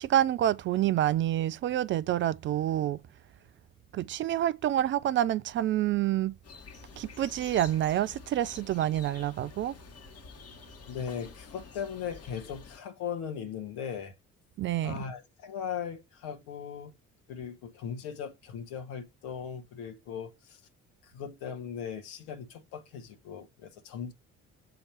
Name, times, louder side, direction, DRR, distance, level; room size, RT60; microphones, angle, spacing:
voice 1, 0.0-3.0 3.9-6.3 7.0-9.7 14.6-14.9, right 12 dB, 35° right, 0.4 m, -27 dB
sound 1, 6.4-12.8, left 5 dB, 40° left, 1.3 m, -49 dB
voice 2, 10.9-14.1 14.8-17.0 17.3-20.6 21.0-24.1, left 7 dB, 60° left, 1.1 m, -38 dB
7.7 x 2.9 x 4.2 m
figure-of-eight pair, 45°, 39 cm